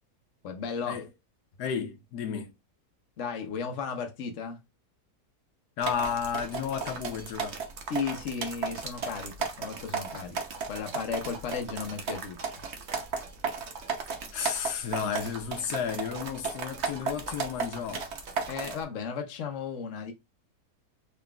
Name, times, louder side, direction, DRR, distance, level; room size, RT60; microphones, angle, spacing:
voice 1, 0.4-1.1 3.2-4.6 7.9-10.4 10.7-12.4 18.5-20.1, left 6 dB, 55° left, 1.0 m, -35 dB
voice 2, 1.6-2.5 5.8-7.6 14.3-18.1, left 7 dB, 75° left, 1.2 m, -32 dB
sound 1, 5.8-18.8, right 5 dB, 55° right, 0.9 m, -35 dB
4.0 x 3.7 x 2.2 m
omnidirectional pair, 1.7 m